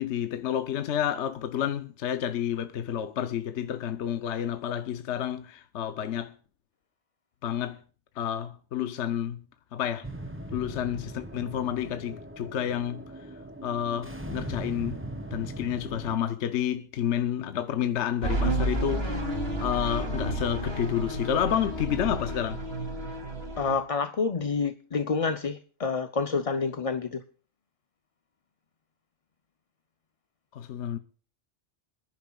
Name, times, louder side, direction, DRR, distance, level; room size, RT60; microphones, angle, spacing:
voice 1, 0.0-6.3 7.4-7.8 8.2-9.4 9.7-10.1 10.5-13.1 13.6-15.0 15.3-22.6 30.5-31.0, left 10 dB, 70° left, 1.0 m, -30 dB
sound 1, 10.0-16.2, right 1 dB, 10° right, 1.2 m, -39 dB
sound 2, 18.2-23.7, right 1 dB, 55° right, 3.1 m, -31 dB
voice 2, 23.6-27.2, left 4 dB, 40° left, 0.6 m, -28 dB
27.0 x 11.0 x 2.3 m
omnidirectional pair, 1.2 m